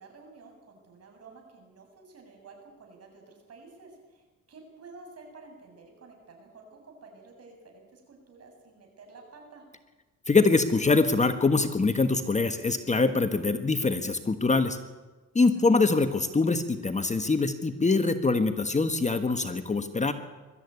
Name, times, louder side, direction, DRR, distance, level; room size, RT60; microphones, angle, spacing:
voice 1, 0.0-4.2 4.5-9.7 15.7-15.8, right 3 dB, 55° right, 2 dB, 7.4 m, -51 dB
voice 2, 10.3-14.8 15.3-20.1, left 3 dB, 25° left, 8 dB, 1.4 m, -24 dB
22.0 x 13.0 x 9.6 m, 1.2 s
cardioid pair, 90°, 30 cm